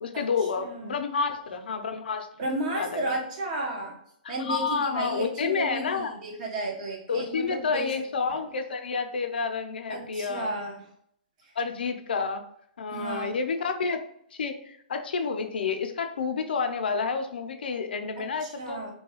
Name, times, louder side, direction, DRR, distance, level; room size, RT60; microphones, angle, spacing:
voice 1, 0.0-2.3 2.7-3.1 4.2-6.1 7.1-10.5 11.6-12.4 12.8-14.0 14.3-18.8, left 5 dB, 85° left, 6 dB, 0.5 m, -29 dB
voice 2, 0.6-0.9 2.4-3.9 4.3-7.9 9.9-10.8 12.9-13.3 18.2-18.9, right 2 dB, 45° right, -1 dB, 1.0 m, -33 dB
3.1 x 2.3 x 2.9 m, 0.68 s
hypercardioid pair, 150°, 5 cm